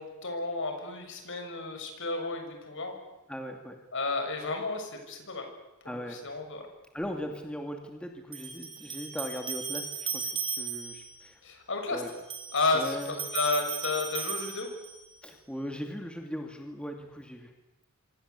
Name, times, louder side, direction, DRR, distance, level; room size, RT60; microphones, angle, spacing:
voice 1, 0.0-2.9 3.9-5.5 5.8-6.7 11.4-12.0 12.5-14.7, left 3 dB, 60° left, 4 dB, 6.7 m, -32 dB
voice 2, 3.3-3.8 5.9-6.2 6.9-11.4 11.9-12.1 12.7-13.1 15.2-17.5, equal, 5° left, 3 dB, 2.4 m, -39 dB
sound 1, 7.0-7.1 8.3-11.1 12.1-15.1, right 6 dB, 25° right, 4.5 m, -37 dB
26.5 x 26.0 x 8.4 m, 1.1 s
head